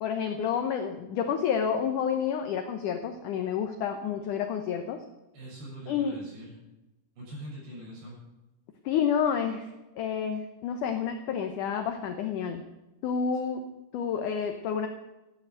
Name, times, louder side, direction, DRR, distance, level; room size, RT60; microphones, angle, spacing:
voice 1, 0.0-5.0 5.9-6.2 8.9-9.7 10.0-12.6 13.0-13.6 13.9-14.9, left 7 dB, 75° left, 5 dB, 2.0 m, -29 dB
voice 2, 5.3-6.6 7.2-8.2 13.3-13.4, right 1 dB, 80° right, -4 dB, 9.3 m, -43 dB
14.0 x 9.2 x 7.8 m, 1.0 s
omnidirectional pair, 4.7 m